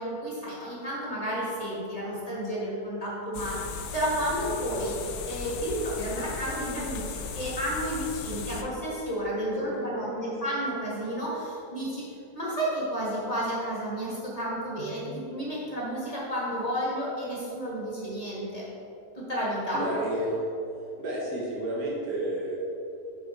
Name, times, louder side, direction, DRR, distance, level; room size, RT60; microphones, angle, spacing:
voice 1, 0.0-12.0 12.3-18.6 19.1-19.8, equal, 25° left, -6 dB, 1.4 m, -31 dB
sound 1, 3.3-8.6, left 6 dB, 90° left, 1.1 m, -37 dB
voice 2, 9.5-10.4 14.8-14.9 19.7-20.4 21.0-22.6, right 1 dB, 80° right, -5 dB, 1.6 m, -32 dB
6.4 x 4.6 x 3.8 m, 2.8 s
omnidirectional pair, 1.5 m